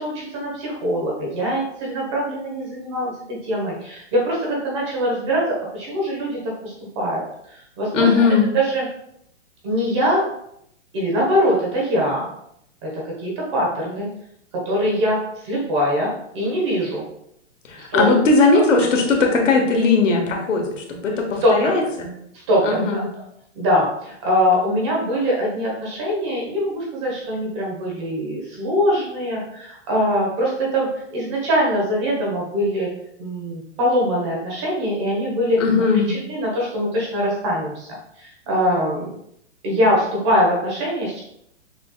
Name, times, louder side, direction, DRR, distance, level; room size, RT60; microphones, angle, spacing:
voice 1, 0.0-8.2 8.5-8.9 9.6-10.2 10.9-12.3 12.8-14.1 14.6-15.2 15.4-17.0 17.9-18.1 21.4-21.7 22.5-22.8 23.5-32.9 33.2-35.6 36.1-37.9 38.2-39.1 39.6-41.2, equal, 25° right, -3 dB, 1.2 m, -22 dB
voice 2, 7.9-8.5 17.7-20.6 21.0-22.1 22.6-23.0 35.6-36.1, left 4 dB, 90° left, 1 dB, 1.5 m, -18 dB
6.5 x 3.5 x 2.3 m, 0.75 s
hypercardioid pair, 175°, 37 cm